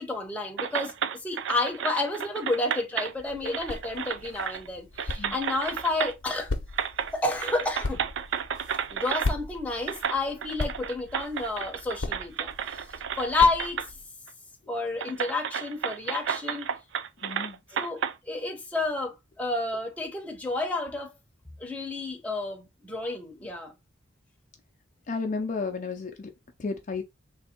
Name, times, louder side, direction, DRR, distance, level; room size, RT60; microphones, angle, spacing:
voice 1, 0.0-6.5 7.1-8.0 8.9-12.5 13.2-13.8 14.7-16.7 17.7-18.0 18.3-21.1 21.6-23.7, left 3 dB, 5° left, 0.8 m, -30 dB
sound 1, 0.6-3.1 3.4-4.7 5.0-6.4 6.7-7.1 7.4-9.3 9.9-13.9 14.3-14.4 15.0-18.1, right 8 dB, 65° right, 0.4 m, -32 dB
sound 2, 3.1-14.1, left 2 dB, 75° left, 0.7 m, -38 dB
voice 2, 17.2-17.6 25.1-26.3 26.6-27.0, left 4 dB, 40° left, 0.5 m, -32 dB
3.3 x 2.6 x 4.2 m
head